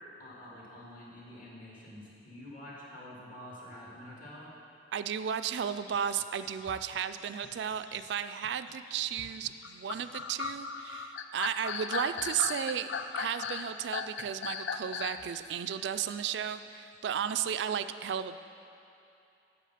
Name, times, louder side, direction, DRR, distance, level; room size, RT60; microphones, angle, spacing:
voice 1, 0.2-4.5, left 1 dB, 45° left, -5 dB, 2.0 m, -47 dB
voice 2, 4.9-18.4, right 8 dB, 70° right, 10 dB, 0.3 m, -34 dB
sound 1, 5.6-15.3, left 6 dB, 85° left, 0.4 m, -39 dB
8.3 x 7.1 x 5.7 m, 2.7 s
head